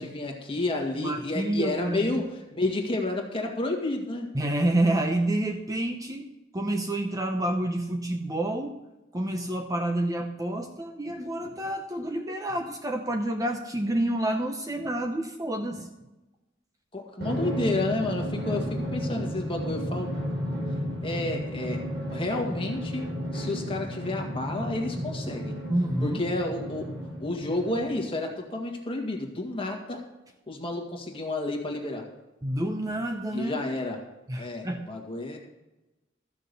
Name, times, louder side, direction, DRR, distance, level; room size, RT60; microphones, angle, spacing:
voice 1, 0.0-4.3 16.9-20.1 21.0-21.8 22.1-25.6 26.0-26.9 27.2-30.0 30.5-32.1 33.3-34.0 34.4-35.4, left 2 dB, 30° left, 2 dB, 1.9 m, -30 dB
voice 2, 0.9-2.3 4.3-8.8 9.1-15.9 25.0-25.1 25.7-26.2 32.4-33.6 34.3-34.9, right 1 dB, 20° right, 4 dB, 0.7 m, -29 dB
Drum, 17.2-28.2, equal, 60° right, 5.0 m, -33 dB
14.0 x 6.2 x 6.8 m, 1.0 s
head